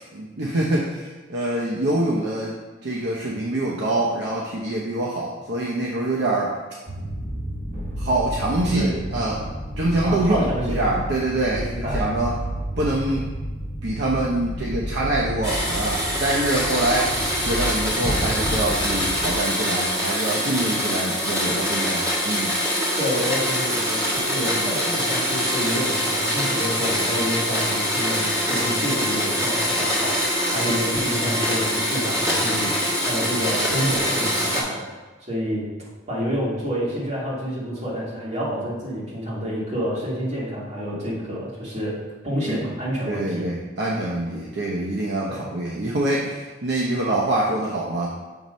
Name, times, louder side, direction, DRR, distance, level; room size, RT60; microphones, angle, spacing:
voice 1, 0.1-2.6 2.8-6.5 8.0-8.9 9.1-9.5 9.8-12.3 12.8-13.3 13.8-22.5 42.5-42.6 43.1-48.1, right 2 dB, 60° right, -3 dB, 0.7 m, -25 dB
sound 1, 6.9-19.3, equal, 85° right, 2.0 m, -31 dB
voice 2, 10.0-10.9 11.5-12.0 23.0-34.9 35.2-35.7 36.1-42.0 42.2-43.4 45.3-45.4, equal, 35° right, -7 dB, 1.9 m, -28 dB
Domestic sounds home sounds, 15.4-34.6, equal, 15° right, 1.7 m, -24 dB
7.1 x 3.1 x 5.2 m, 1.3 s
head